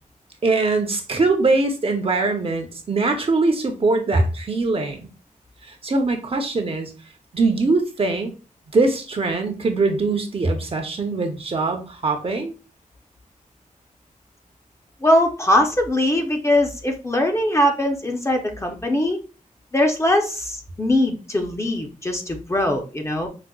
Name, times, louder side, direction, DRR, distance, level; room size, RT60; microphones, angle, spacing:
voice 1, 0.4-5.1 5.7-6.9 7.3-8.3 8.7-12.5, right 3 dB, 45° right, 4 dB, 0.5 m, -22 dB
voice 2, 15.0-19.2 19.7-23.3, left 1 dB, 20° left, 3 dB, 0.5 m, -21 dB
4.8 x 2.0 x 2.2 m, 0.33 s
wide cardioid pair, 125°, 14 cm